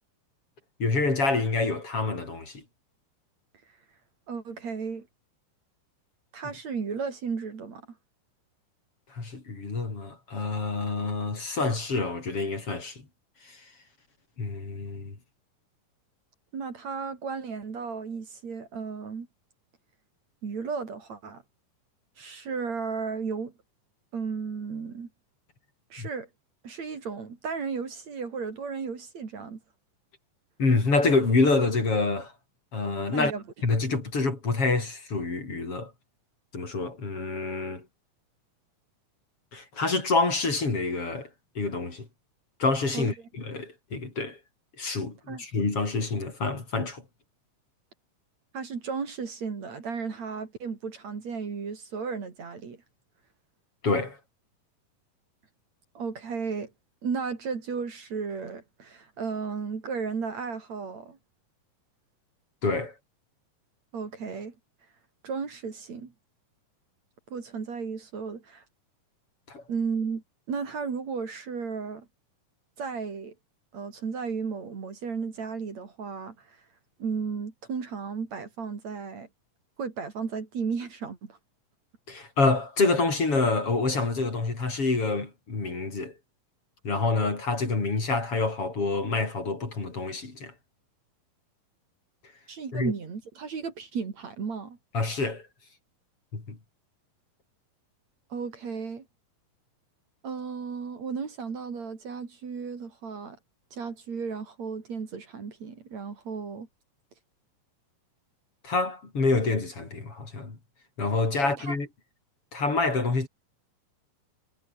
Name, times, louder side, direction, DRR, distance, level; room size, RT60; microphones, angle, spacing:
voice 1, 0.8-2.6 9.1-13.0 13.4-13.6 14.4-15.1 26.0-26.1 30.6-32.3 32.7-33.3 33.6-35.9 36.5-37.9 39.5-41.3 41.6-42.1 42.6-44.4 44.8-47.0 53.8-54.2 62.6-62.9 69.5-69.6 82.1-86.1 86.8-90.5 92.7-92.9 94.9-95.5 96.3-96.6 108.6-110.6 111.0-111.9 112.5-113.3, left 3 dB, 40° left, 5.9 m, -27 dB
voice 2, 4.3-5.1 6.3-7.9 16.5-19.3 20.4-21.4 22.2-23.5 24.1-25.1 25.9-26.3 26.6-29.6 33.1-33.4 42.9-43.1 45.3-45.4 48.5-52.8 55.9-56.7 57.0-61.2 63.9-64.5 65.2-66.1 67.3-68.6 69.7-72.1 72.8-73.3 73.7-76.6 77.0-79.3 79.8-81.4 92.5-94.8 98.3-99.0 100.2-103.4 103.7-106.7 111.4-111.8, right 5 dB, 50° right, 4.4 m, -34 dB
omnidirectional pair, 4.0 m